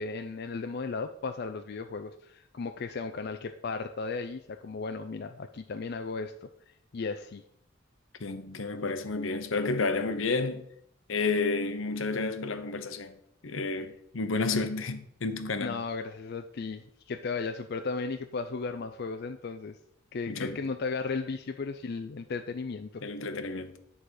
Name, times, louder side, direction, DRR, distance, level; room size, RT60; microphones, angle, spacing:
voice 1, 0.0-6.5 6.9-7.4 15.6-19.8 20.1-23.0, left 4 dB, 55° left, 0.5 m, -35 dB
voice 2, 8.2-10.6 11.1-13.2 13.4-15.8 20.3-20.6 23.0-23.7, left 3 dB, 80° left, 0.9 m, -31 dB
10.0 x 4.2 x 6.3 m
head